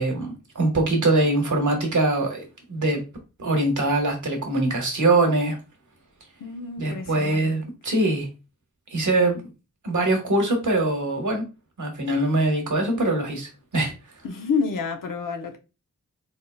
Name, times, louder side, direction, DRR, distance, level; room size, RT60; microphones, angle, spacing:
voice 1, 0.0-3.0 3.4-5.6 6.8-8.3 8.9-9.4 9.8-11.4 11.8-13.9, right 2 dB, 65° right, 1.4 m, -23 dB
voice 2, 6.4-7.5 14.2-15.6, left 5 dB, 80° left, 0.8 m, -29 dB
4.1 x 3.6 x 2.3 m
wide cardioid pair, 85°, 32 cm